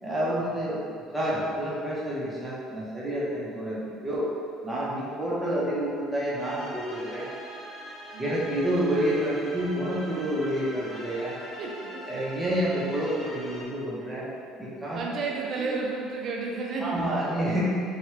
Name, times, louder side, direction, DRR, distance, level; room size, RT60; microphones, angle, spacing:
voice 1, 0.0-4.3 4.6-7.3 8.2-11.4 12.1-14.3 14.6-15.0 15.6-15.7 16.8-17.6, right 1 dB, 10° right, -9 dB, 1.0 m, -29 dB
sound 1, 6.4-13.6, equal, 30° left, 1.1 m, -42 dB
voice 2, 11.5-12.2 14.9-17.2, right 4 dB, 50° right, -2 dB, 0.5 m, -32 dB
2.8 x 2.4 x 3.2 m, 2.4 s
hypercardioid pair, 65°, 0 cm